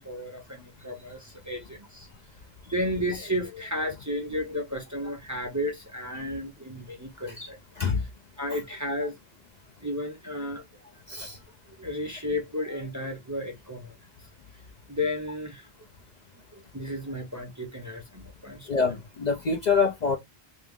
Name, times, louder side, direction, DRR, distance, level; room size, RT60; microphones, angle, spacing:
voice 1, 0.0-2.1 2.7-7.6 8.4-9.1 9.8-10.6 11.8-13.9 14.9-15.6 16.7-18.6, left 1 dB, 20° right, 0.6 m, -33 dB
voice 2, 18.7-20.2, left 5 dB, 50° left, 0.6 m, -25 dB
3.0 x 2.6 x 3.4 m
omnidirectional pair, 1.1 m